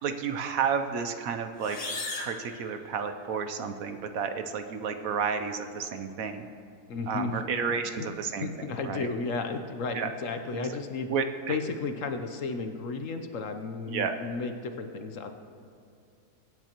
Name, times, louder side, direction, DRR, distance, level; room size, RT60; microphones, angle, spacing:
voice 1, 0.0-1.8 2.2-6.5 7.1-8.5 8.8-9.1 9.9-10.1 10.5-10.7 11.1-11.6 13.9-14.2, right 6 dB, 65° right, 8 dB, 1.1 m, -31 dB
sound 1, 1.5-3.4, left 2 dB, 35° left, 1.2 m, -38 dB
voice 2, 6.9-7.4 7.7-7.8 8.4-11.1 11.5-15.3, left 4 dB, 60° left, 7 dB, 1.0 m, -33 dB
23.0 x 9.2 x 3.0 m, 2.4 s
omnidirectional pair, 1.7 m